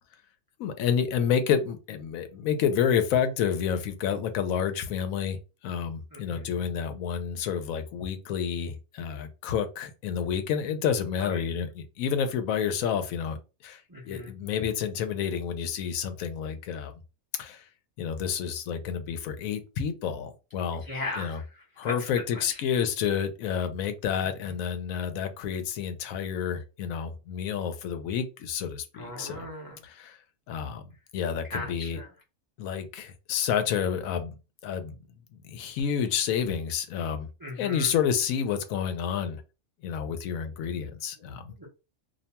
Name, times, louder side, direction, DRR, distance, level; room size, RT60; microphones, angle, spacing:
voice 1, 0.6-5.4 5.6-13.4 13.6-16.9 17.4-17.6 18.0-20.8 21.2-21.4 21.8-29.5 29.8-30.2 30.5-30.8 31.1-32.0 32.6-34.3 34.6-35.0 35.4-37.3 37.6-39.4 39.8-41.5, left 7 dB, 85° left, 1.0 m, -29 dB
voice 2, 6.1-6.4 11.2-11.5 13.9-14.3 20.8-21.4 21.8-22.1 22.3-22.4 24.2-24.5 29.0-29.8 31.5-32.1 37.4-37.9 41.6-41.7, left 2 dB, 25° right, 0.4 m, -37 dB
2.6 x 2.2 x 2.8 m
omnidirectional pair, 1.4 m